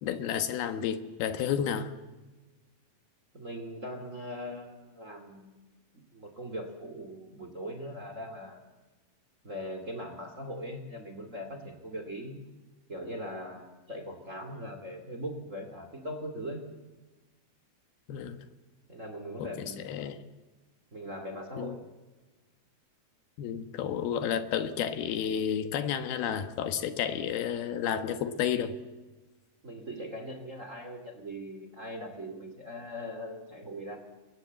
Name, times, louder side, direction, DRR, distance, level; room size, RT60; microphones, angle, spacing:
voice 1, 0.0-1.9 18.1-18.4 19.4-20.2 21.6-21.8 23.4-28.8, left 8 dB, 75° left, 10 dB, 3.3 m, -31 dB
voice 2, 3.3-8.6 9.4-12.4 12.9-16.7 18.9-19.9 20.9-21.8 29.6-34.0, equal, 25° right, 6 dB, 2.2 m, -40 dB
29.5 x 23.0 x 8.1 m, 1.2 s
omnidirectional pair, 4.5 m